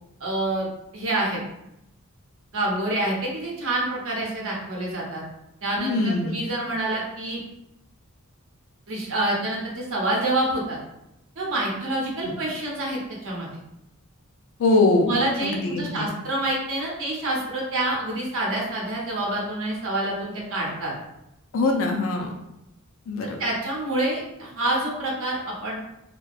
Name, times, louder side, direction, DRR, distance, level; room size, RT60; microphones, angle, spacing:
voice 1, 0.2-0.7 0.9-1.4 2.5-5.2 5.6-6.0 6.2-7.4 8.9-10.8 11.4-13.5 15.0-20.9 23.4-25.8, right 1 dB, 65° right, -3 dB, 0.7 m, -27 dB
voice 2, 5.8-6.4 12.2-12.4 14.6-16.1 21.5-22.3 23.1-23.4, left 2 dB, 60° left, 1 dB, 0.4 m, -23 dB
2.6 x 2.1 x 2.3 m, 0.87 s
head